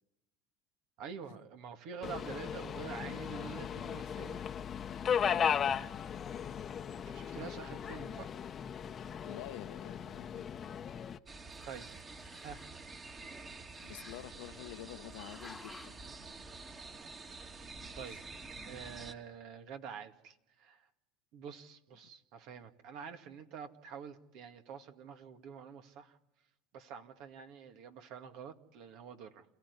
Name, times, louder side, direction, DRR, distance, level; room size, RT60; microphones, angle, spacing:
voice 1, 1.0-4.4 7.1-8.3 11.7-11.9 12.4-12.6 18.0-18.2 18.6-20.8 21.3-26.2 26.7-29.4, right 7 dB, 65° right, 2.1 m, -47 dB
Subway metro underground, 2.0-11.2, left 8 dB, 35° left, 1.0 m, -36 dB
voice 2, 9.2-10.6 13.8-16.0 18.1-18.2, left 15 dB, 75° left, 1.1 m, -48 dB
Growling, 10.0-11.2 11.4-12.9 13.7-14.7 15.2-16.1, left 4 dB, 20° left, 1.4 m, -56 dB
sound 1, 11.3-19.1, right 3 dB, 30° right, 2.5 m, -48 dB
29.0 x 15.5 x 9.7 m
hypercardioid pair, 90°, 0 cm